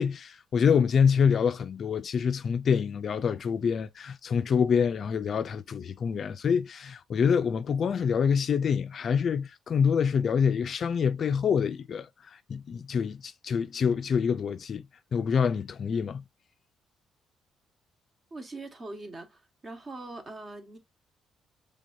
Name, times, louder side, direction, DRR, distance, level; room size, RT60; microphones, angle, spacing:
voice 1, 0.0-14.9 15.1-16.2, left 6 dB, 55° left, 0.3 m, -26 dB
voice 2, 18.3-20.8, right 2 dB, 35° right, 1.3 m, -42 dB
5.3 x 3.4 x 2.5 m
cardioid pair, 90°, 0 cm